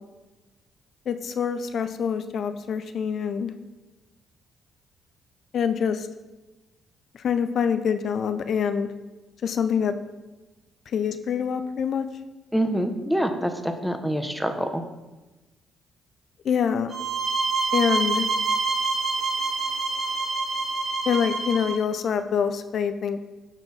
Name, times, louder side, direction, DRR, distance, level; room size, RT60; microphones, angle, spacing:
voice 1, 1.1-3.5 5.5-6.1 7.2-8.9 9.4-9.9 10.9-12.1 16.5-16.9 17.7-18.3 21.1-23.2, left 7 dB, 60° left, 10 dB, 0.5 m, -25 dB
voice 2, 12.5-14.8, equal, ahead, 6 dB, 0.9 m, -26 dB
sound 1, 16.9-21.8, right 4 dB, 45° right, 1.2 m, -26 dB
12.5 x 4.5 x 4.0 m, 1.1 s
cardioid pair, 90°, 0 cm